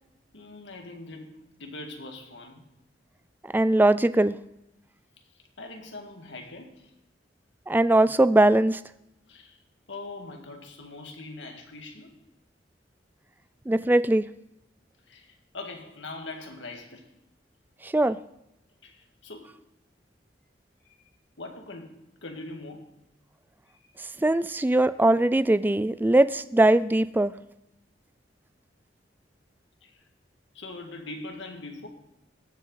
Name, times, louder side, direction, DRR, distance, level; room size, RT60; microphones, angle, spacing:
voice 1, 0.3-1.3 1.6-2.7 5.6-6.9 9.3-9.6 9.9-12.1 15.1-17.1 18.8-19.6 20.9-21.0 21.4-22.9 23.7-23.9 29.8-30.0 30.5-31.9, left 2 dB, 80° left, 3 dB, 1.9 m, -42 dB
voice 2, 3.5-4.3 7.7-8.8 13.7-14.2 17.9-18.2 24.2-27.3, right 1 dB, 10° right, 15 dB, 0.3 m, -20 dB
18.0 x 7.5 x 4.0 m, 0.84 s
head